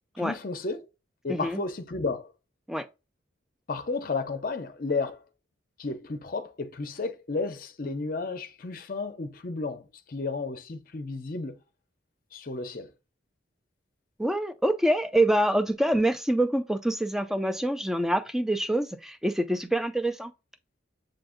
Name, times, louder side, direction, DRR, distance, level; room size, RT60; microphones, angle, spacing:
voice 1, 0.2-0.8 1.2-2.3 3.7-5.2 5.8-11.6 12.3-12.9, left 3 dB, 45° left, 0.6 m, -32 dB
voice 2, 1.3-1.6 2.7-2.8 14.2-20.3, right 1 dB, ahead, 0.3 m, -26 dB
7.7 x 2.6 x 2.4 m
head